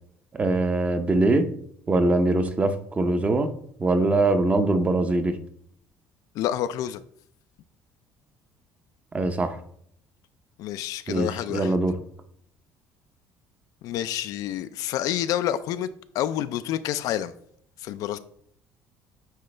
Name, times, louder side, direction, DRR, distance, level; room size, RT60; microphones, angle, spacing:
voice 1, 0.3-1.5 1.9-3.5 3.8-5.4 9.1-9.6 11.1-12.0, right 2 dB, 20° right, 0.6 m, -22 dB
voice 2, 6.3-7.0 10.6-11.7 13.8-15.9 16.1-17.3 17.8-18.2, left 11 dB, 65° left, 0.4 m, -28 dB
9.2 x 3.9 x 3.3 m
cardioid pair, 135°, 7 cm